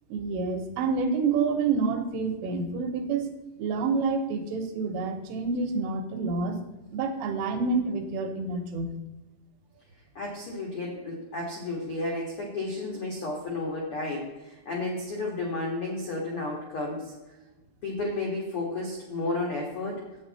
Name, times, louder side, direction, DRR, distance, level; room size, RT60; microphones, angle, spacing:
voice 1, 0.1-3.3 3.6-6.6 6.9-9.0, right 4 dB, 85° right, 4 dB, 3.7 m, -28 dB
voice 2, 10.1-17.1 17.8-20.0, left 2 dB, 80° left, -2 dB, 1.2 m, -32 dB
9.7 x 8.5 x 4.2 m, 1.1 s
omnidirectional pair, 5.6 m